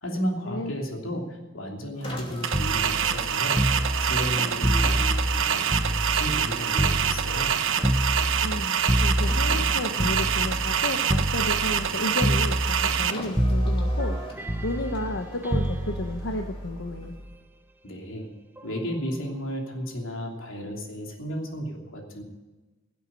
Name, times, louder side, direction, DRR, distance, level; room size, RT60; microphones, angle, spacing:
voice 1, 0.0-3.6 4.0-5.6 6.1-7.5 17.8-18.3 18.6-22.2, equal, 90° left, 0 dB, 3.0 m, -33 dB
Car, 1.9-17.3, left 1 dB, 30° left, 2.7 m, -43 dB
sound 1, 2.4-13.1, right 8 dB, 75° right, 0.9 m, -26 dB
sound 2, 2.5-6.5 6.8-10.8 11.1-11.9 12.2-13.1 13.4-17.4 18.6-18.8, equal, 10° right, 0.7 m, -27 dB
voice 2, 8.4-14.2 14.6-17.2, left 1 dB, 65° left, 4 dB, 1.0 m, -32 dB
17.0 x 8.2 x 8.8 m, 1.2 s
head